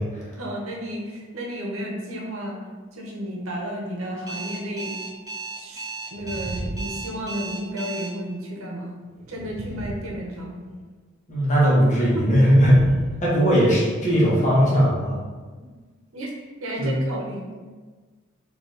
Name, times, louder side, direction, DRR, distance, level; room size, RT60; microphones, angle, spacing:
voice 1, 0.4-2.6 2.9-4.9 5.6-8.9 9.3-10.6 12.0-12.1 15.6-15.7 16.1-16.3 16.6-17.4, equal, 75° right, -1 dB, 0.9 m, -32 dB
Alarm, 4.3-8.1, right 4 dB, 20° right, 0.9 m, -34 dB
sound 1, 6.1-7.7 9.2-10.8 12.4-13.7, right 2 dB, 35° right, 0.3 m, -35 dB
voice 2, 11.3-12.8 13.2-15.2 16.8-16.9, equal, 35° left, -7 dB, 1.3 m, -18 dB
4.1 x 2.9 x 3.3 m, 1.4 s
head